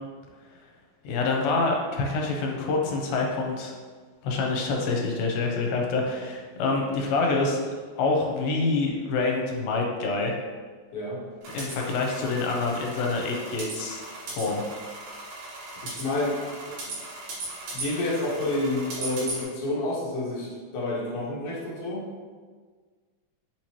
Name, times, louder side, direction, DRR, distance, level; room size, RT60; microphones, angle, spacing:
voice 1, 1.0-3.7 4.2-7.6 8.0-10.4 11.5-14.0 14.4-14.6 16.7-16.8, left 3 dB, 85° left, 1 dB, 2.3 m, -26 dB
sound 1, 11.4-19.4, right 2 dB, 75° right, 3.1 m, -38 dB
voice 2, 15.8-16.4 17.7-22.0, left 2 dB, 65° left, -7 dB, 1.5 m, -29 dB
6.2 x 3.0 x 2.8 m, 1.5 s
omnidirectional pair, 4.2 m